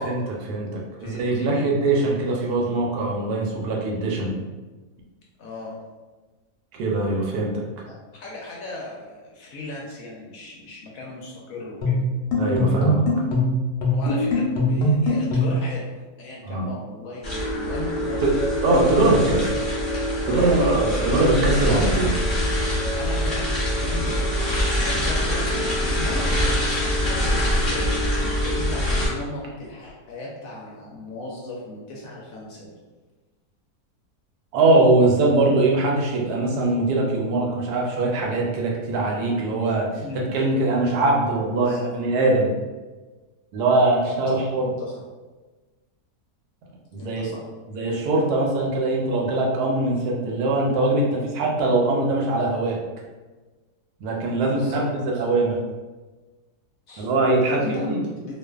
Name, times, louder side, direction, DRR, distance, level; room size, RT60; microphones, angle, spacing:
voice 1, 0.0-4.4 6.8-7.6 12.4-13.0 16.4-16.7 18.2-18.3 18.6-19.6 20.3-22.1 34.5-39.9 40.1-42.5 43.5-44.7 46.9-47.3 47.7-52.8 54.0-55.6 57.0-57.6 57.9-58.0, right 2 dB, 80° right, -1 dB, 1.1 m, -22 dB
voice 2, 1.0-1.6 5.4-5.7 7.9-12.0 13.9-18.4 20.2-20.8 23.0-28.0 28.4-32.8 40.0-40.4 41.4-41.9 44.3-44.9 46.9-47.5 54.4-54.9 55.1-55.2 56.9-58.4, left 2 dB, 70° left, -4 dB, 0.9 m, -36 dB
sound 1, 11.8-15.7, left 1 dB, 85° left, 1.2 m, -21 dB
sound 2, 17.2-29.1, equal, 20° left, 0.8 m, -24 dB
2.5 x 2.4 x 2.3 m, 1.2 s
omnidirectional pair, 1.7 m